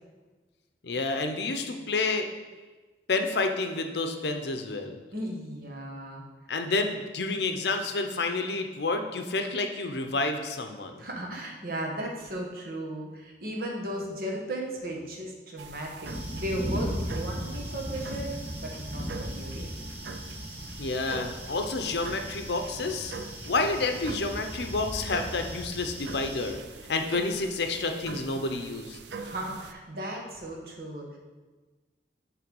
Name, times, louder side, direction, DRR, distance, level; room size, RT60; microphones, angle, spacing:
voice 1, 0.8-2.3 3.1-5.0 6.5-11.0 20.8-23.1 23.5-26.6 26.9-29.0, left 3 dB, 70° left, 6 dB, 0.6 m, -29 dB
voice 2, 5.1-6.2 11.0-18.3 18.6-19.7 29.2-31.2, right 1 dB, 55° right, 0 dB, 1.1 m, -36 dB
sound 1, 15.6-29.7, right 4 dB, 75° right, 0.5 m, -44 dB
sound 2, 16.1-26.5, equal, 10° right, 0.8 m, -37 dB
7.7 x 3.4 x 5.3 m, 1.3 s
head